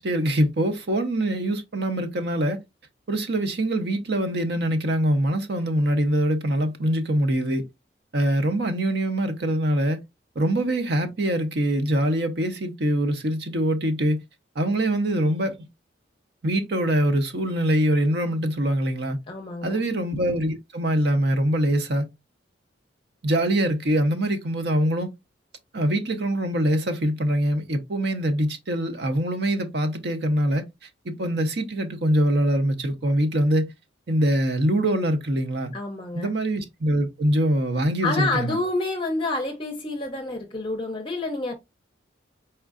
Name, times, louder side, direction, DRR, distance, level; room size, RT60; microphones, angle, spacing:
voice 1, 0.0-2.6 3.1-7.6 8.1-10.0 10.4-14.2 14.6-15.5 16.4-19.2 19.6-22.1 23.2-25.1 25.7-30.6 31.0-33.7 34.1-35.7 36.1-38.6, right 1 dB, 60° right, 0.7 m, -23 dB
voice 2, 19.3-19.8 35.7-36.3 38.0-41.6, left 2 dB, 25° left, 0.6 m, -28 dB
4.4 x 3.6 x 2.4 m
head